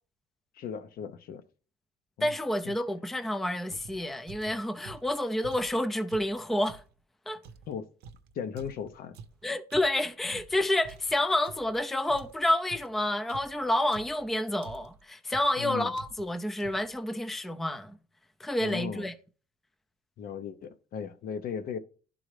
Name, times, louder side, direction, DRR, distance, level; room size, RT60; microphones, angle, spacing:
voice 1, 0.6-1.4 2.2-2.3 2.6-2.7 7.7-7.9 8.3-9.2 15.6-15.9 18.6-19.1 20.2-21.8, left 7 dB, 60° left, 0.7 m, -37 dB
voice 2, 2.2-6.8 7.3-7.4 9.4-18.0 18.4-19.1, left 1 dB, ahead, 0.4 m, -29 dB
sound 1, 3.7-6.9 7.4-11.8 12.1-14.3 14.6-15.0 15.3-15.6 15.9-16.3 16.6-17.0, right 5 dB, 75° right, 0.6 m, -49 dB
11.0 x 3.8 x 3.2 m
cardioid pair, 110°, 17 cm